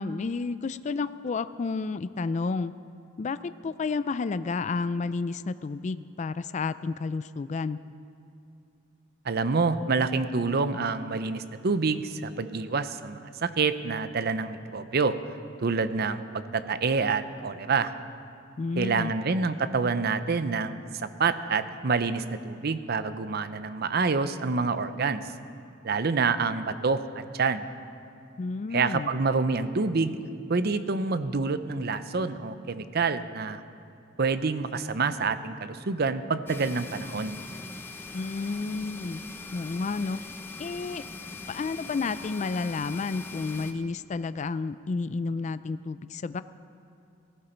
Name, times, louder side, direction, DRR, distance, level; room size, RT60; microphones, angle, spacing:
voice 1, 0.0-2.7 3.2-7.8 18.6-19.1 28.4-29.1 38.1-39.2 39.5-40.2 40.6-41.0 41.5-46.4, left 4 dB, 40° left, 14 dB, 0.4 m, -31 dB
voice 2, 9.2-15.2 15.6-17.9 18.8-25.2 25.8-27.0 27.3-27.7 28.7-30.2 30.5-33.6 34.2-37.4, right 4 dB, 55° right, 12 dB, 0.7 m, -27 dB
sound 1, 36.5-43.7, left 3 dB, 10° left, 0.8 m, -41 dB
17.5 x 15.5 x 4.4 m, 2.7 s
head